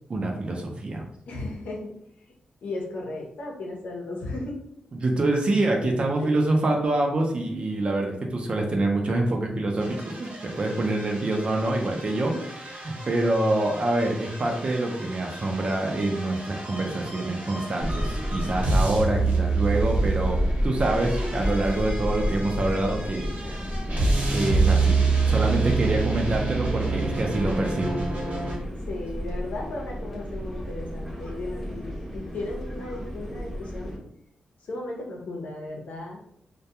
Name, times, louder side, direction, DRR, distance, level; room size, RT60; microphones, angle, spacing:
voice 1, 0.1-1.0 5.0-12.3 12.8-20.4 20.6-23.7 24.3-25.0 25.3-28.0, right 2 dB, 40° right, 1 dB, 0.5 m, -26 dB
voice 2, 1.3-2.0 2.6-4.6 6.2-6.4 12.2-12.5 12.9-13.1 28.9-33.9 34.6-36.2, left 2 dB, 80° left, -1 dB, 0.7 m, -35 dB
sound 1, 9.8-28.6, right 4 dB, 70° right, 0.7 m, -28 dB
sound 2, 17.8-34.0, equal, 5° right, 0.6 m, -31 dB
2.2 x 2.2 x 2.8 m, 0.71 s
cardioid pair, 90°, 3 cm